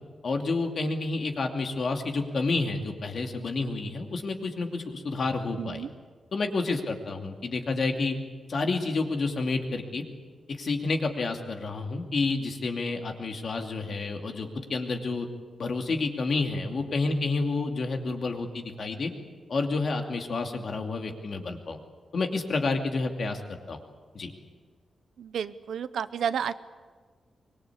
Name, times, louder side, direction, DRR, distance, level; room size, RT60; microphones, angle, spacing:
voice 1, 0.2-5.8 6.3-8.2 8.5-10.0 10.6-15.3 15.6-19.1 19.5-21.8 22.1-23.4 23.7-23.8 24.1-24.3, left 3 dB, 50° left, 4 dB, 2.6 m, -29 dB
voice 2, 5.6-5.9 25.2-26.5, right 8 dB, 85° right, 13 dB, 0.9 m, -31 dB
24.0 x 22.0 x 8.5 m, 1.5 s
wide cardioid pair, 150°, 0 cm